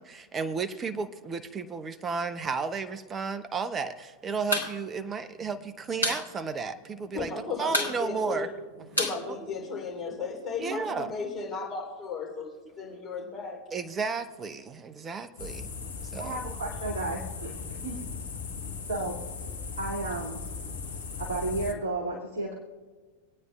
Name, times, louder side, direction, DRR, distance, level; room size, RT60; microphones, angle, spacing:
voice 1, 0.0-8.5 10.6-11.1 13.7-15.7 16.0-16.4, right 5 dB, 20° right, 10 dB, 0.6 m, -33 dB
sound 1, 4.4-4.7 5.0-5.1 5.4-6.3 6.6-6.7 6.9-7.3 7.7-10.1, left 1 dB, 80° left, 1.5 m, -30 dB
voice 2, 7.1-8.5 9.0-12.5 12.8-13.6, left 4 dB, 25° left, -3 dB, 3.3 m, -35 dB
sound 2, 15.4-21.7, left 4 dB, 65° left, 1.0 m, -38 dB
voice 3, 16.2-18.0 18.9-19.2 19.8-20.4 21.2-22.5, right 2 dB, 55° right, -3 dB, 2.2 m, -33 dB
26.5 x 9.3 x 2.3 m, 1.4 s
figure-of-eight pair, 90°, 0 cm